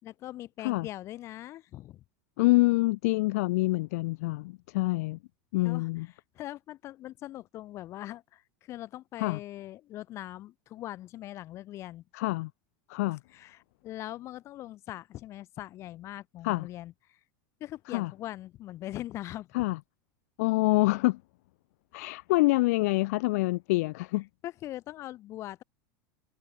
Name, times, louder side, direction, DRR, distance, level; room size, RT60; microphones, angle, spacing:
voice 1, 0.0-2.0 5.6-5.9 6.3-12.0 13.3-17.2 17.6-19.5 24.4-25.6, left 14 dB, 30° left, 4.2 m, -41 dB
voice 2, 2.4-5.2 5.5-6.1 9.2-9.4 12.1-12.5 12.9-13.2 16.4-16.7 17.9-18.1 19.5-19.8 20.4-21.2 21.9-24.3, left 21 dB, 60° left, 1.3 m, -26 dB
supercardioid pair, 175°, 9 cm